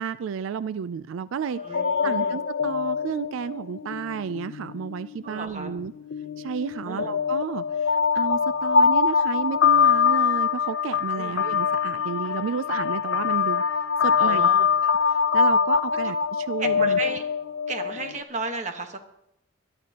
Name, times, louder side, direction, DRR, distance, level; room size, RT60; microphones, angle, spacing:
voice 1, 0.0-1.6 2.0-5.9 6.4-7.6 8.1-13.6 14.0-14.5 15.3-17.0, right 6 dB, 90° right, 15 dB, 0.4 m, -31 dB
sound 1, 1.5-5.0 5.7-18.2, left 6 dB, 70° left, 0.5 m, -23 dB
voice 2, 1.6-2.4 5.2-5.8 6.8-7.1 11.2-11.5 14.2-14.7 16.6-17.2 17.7-19.0, right 3 dB, 35° right, 5 dB, 1.3 m, -33 dB
21.5 x 11.5 x 2.9 m, 0.81 s
head